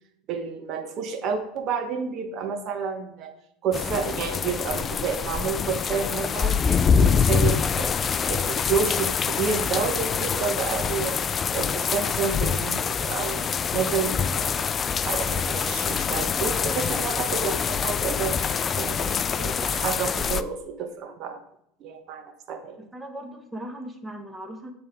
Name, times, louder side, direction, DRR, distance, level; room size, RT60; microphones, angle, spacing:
voice 1, 0.3-3.3 3.6-7.9 8.3-11.2 11.5-14.5 15.0-18.3 18.8-21.4 21.8-22.8, right 6 dB, 50° right, 7 dB, 1.1 m, -30 dB
sound 1, 3.7-20.4, left 6 dB, 30° left, 0.3 m, -25 dB
voice 2, 22.9-24.7, right 1 dB, 10° right, 5 dB, 1.1 m, -38 dB
8.4 x 3.5 x 4.6 m, 0.73 s
hypercardioid pair, 85°, 0 cm